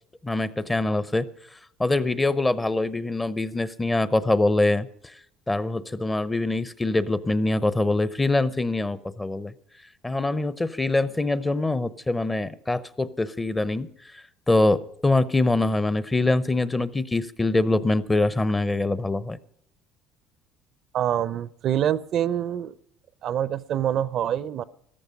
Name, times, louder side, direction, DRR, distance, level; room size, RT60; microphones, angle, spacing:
voice 1, 0.2-1.2 1.8-4.9 5.5-9.5 10.0-13.9 14.5-19.4, left 2 dB, 10° left, 16 dB, 0.7 m, -24 dB
voice 2, 20.9-22.7 23.2-24.6, right 10 dB, 50° right, 18 dB, 0.6 m, -25 dB
15.0 x 14.0 x 5.3 m, 0.70 s
cardioid pair, 115°, 0 cm